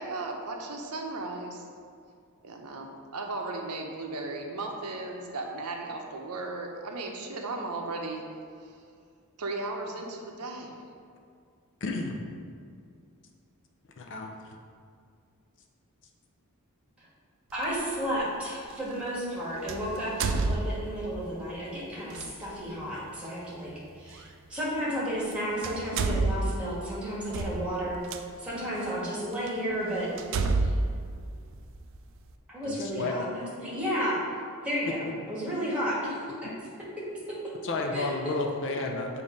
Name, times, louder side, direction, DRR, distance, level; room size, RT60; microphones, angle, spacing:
voice 1, 0.0-1.6 2.4-8.2 8.6-8.8 9.4-10.8, right 2 dB, 85° right, 2 dB, 0.7 m, -36 dB
voice 2, 11.8-12.2 14.0-14.3 32.6-33.1 37.6-39.1, left 3 dB, 55° left, 2 dB, 0.6 m, -31 dB
voice 3, 17.5-23.7 24.0-28.0 28.4-30.8 32.5-34.2 34.6-36.2 37.0-37.4 37.9-38.3, equal, 5° right, -7 dB, 1.4 m, -32 dB
sound 1, 17.6-17.8 19.7-21.2 22.1-22.3 24.1-24.2 25.2-25.3 25.6-28.2 28.9-29.0 29.5-29.6 30.2-32.0, right 3 dB, 60° right, 0.4 m, -29 dB
7.1 x 2.7 x 5.0 m, 2.2 s
head